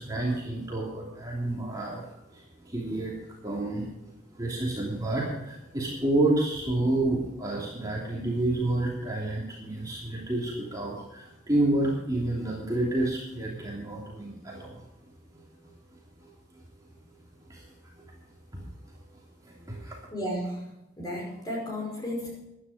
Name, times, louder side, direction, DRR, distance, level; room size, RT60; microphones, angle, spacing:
voice 1, 0.0-2.0 2.3-3.1 3.4-3.9 4.3-14.8 16.2-16.3 17.5-17.6 18.5-18.6 19.4-20.0, right 2 dB, 20° right, -4 dB, 3.0 m, -29 dB
voice 2, 20.1-22.4, equal, 20° left, -2 dB, 5.4 m, -34 dB
15.0 x 11.5 x 5.1 m, 0.91 s
head